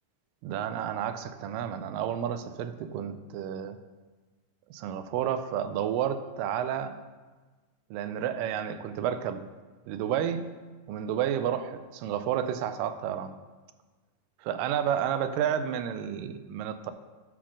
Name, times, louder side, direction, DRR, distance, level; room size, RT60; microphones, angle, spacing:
voice 1, 0.4-3.8 4.7-7.0 7.9-9.5 9.9-10.4 10.9-13.3 14.4-16.9, right 9 dB, 85° right, 10 dB, 2.2 m, -31 dB
10.0 x 4.1 x 6.2 m, 1.3 s
omnidirectional pair, 3.9 m